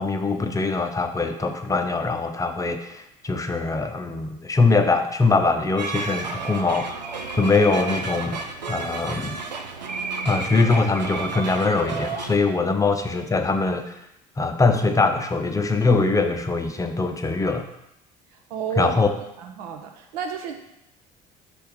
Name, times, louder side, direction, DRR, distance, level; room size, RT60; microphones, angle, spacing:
voice 1, 0.0-7.0 7.3-8.4 8.7-9.4 10.2-13.9 14.4-17.7 18.8-19.1, left 3 dB, 15° left, 7 dB, 0.7 m, -22 dB
sound 1, 5.8-12.4, right 4 dB, 85° right, 0.5 m, -31 dB
voice 2, 18.3-19.0 19.4-20.6, right 8 dB, 65° right, 4 dB, 0.9 m, -32 dB
6.1 x 3.4 x 4.6 m, 0.83 s
figure-of-eight pair, 60°, 21 cm